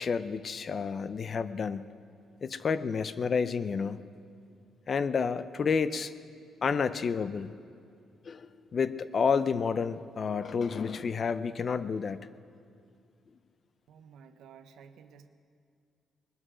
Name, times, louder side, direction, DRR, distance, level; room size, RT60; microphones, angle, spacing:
voice 1, 0.0-1.8 2.4-4.0 4.9-6.1 6.6-7.5 8.3-12.2, left 5 dB, 35° left, 14 dB, 0.4 m, -30 dB
voice 2, 13.9-15.3, right 7 dB, 75° right, 9 dB, 0.8 m, -53 dB
20.5 x 12.5 x 5.0 m, 2.3 s
cardioid pair, 180°, 0 cm